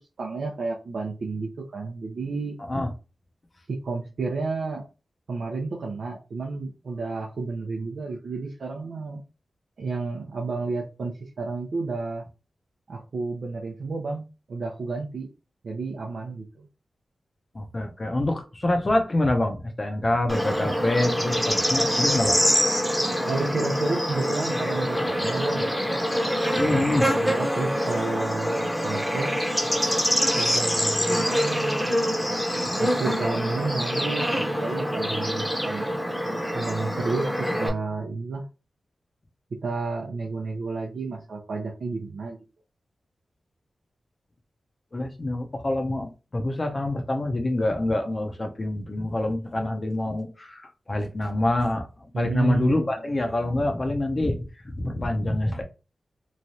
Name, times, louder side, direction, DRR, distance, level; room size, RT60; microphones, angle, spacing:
voice 1, 0.2-2.6 3.7-4.8 5.3-9.2 9.8-12.2 12.9-15.3 15.6-16.7 23.3-25.7 26.7-29.3 30.4-31.9 32.7-35.9 36.5-38.4 39.5-42.4 52.1-53.0, right 3 dB, 75° right, 0.6 m, -31 dB
voice 2, 17.5-22.4 26.5-27.1 44.9-51.9 52.1-54.4 54.7-55.6, left 1 dB, 35° left, 0.7 m, -26 dB
Bird / Insect, 20.3-37.7, equal, 5° left, 0.9 m, -25 dB
3.1 x 2.3 x 2.7 m
cardioid pair, 60°, 0 cm